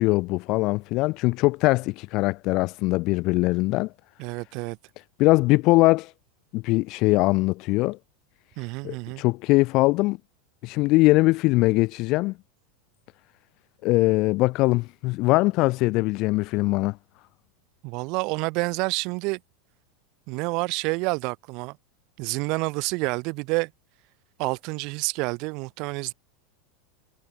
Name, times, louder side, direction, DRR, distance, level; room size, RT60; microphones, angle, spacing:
voice 1, 0.0-3.9 5.2-6.1 6.5-8.0 8.8-10.2 10.6-12.3 13.8-17.0, left 21 dB, 35° left, 0.6 m, -21 dB
voice 2, 4.2-4.8 8.6-9.2 17.8-19.4 20.3-21.8 22.2-23.7 24.4-26.1, right 28 dB, 40° right, 3.6 m, -28 dB
supercardioid pair, 170°, 0 cm